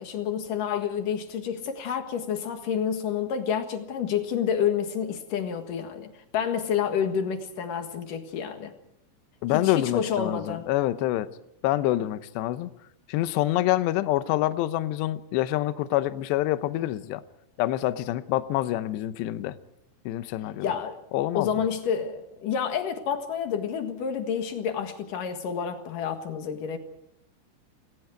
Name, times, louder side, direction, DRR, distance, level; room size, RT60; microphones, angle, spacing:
voice 1, 0.0-8.7 9.5-10.7 20.6-21.0 21.3-26.8, left 7 dB, 55° left, 2.6 m, -29 dB
voice 2, 9.4-11.3 11.6-12.7 13.1-17.2 17.6-19.6 20.1-20.7 21.1-21.5, left 15 dB, 75° left, 2.7 m, -26 dB
29.5 x 20.5 x 4.6 m
omnidirectional pair, 5.6 m